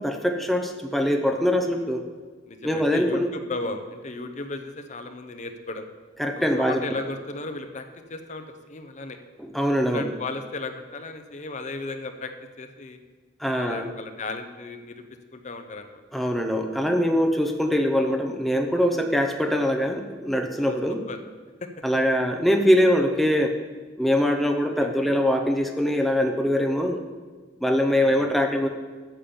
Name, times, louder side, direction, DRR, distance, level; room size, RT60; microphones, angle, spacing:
voice 1, 0.0-2.0 2.6-3.3 6.2-6.8 9.4-10.1 13.4-13.9 16.1-21.0 21.8-23.6 24.0-27.0 27.6-28.7, equal, ahead, 3 dB, 0.7 m, -23 dB
voice 2, 2.5-5.9 6.4-7.8 8.1-9.2 9.9-12.3 12.6-13.0 13.5-15.0 15.3-16.0 20.6-20.8 21.1-21.2 21.6-21.7 28.0-28.3, left 3 dB, 40° left, 7 dB, 0.8 m, -35 dB
8.9 x 7.3 x 7.0 m, 1.4 s
head